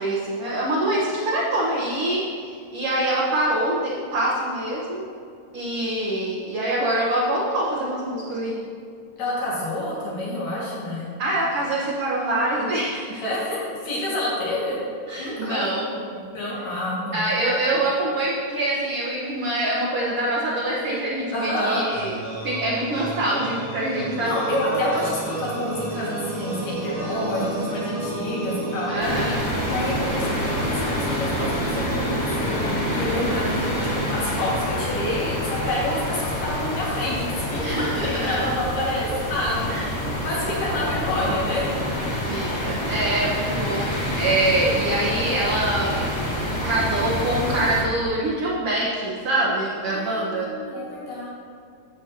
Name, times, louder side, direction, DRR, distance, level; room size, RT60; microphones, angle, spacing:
voice 1, 0.0-5.0 5.5-8.5 11.2-13.2 15.1-15.9 17.1-22.2 22.4-24.3 28.9-29.4 37.5-38.5 39.7-40.1 42.1-46.2 46.6-50.5, right 1 dB, 60° right, -6 dB, 1.6 m, -25 dB
voice 2, 9.2-11.1 13.2-14.8 15.2-17.3 21.3-21.8 24.2-29.0 29.7-33.5 33.9-37.7 38.0-41.7 49.9-51.3, left 1 dB, 75° left, -6 dB, 3.7 m, -28 dB
sound 1, 21.9-34.8, right 2 dB, 85° right, 3.6 m, -31 dB
sound 2, 29.0-47.8, left 1 dB, 60° left, 0.4 m, -27 dB
11.0 x 7.4 x 2.9 m, 2.3 s
omnidirectional pair, 3.8 m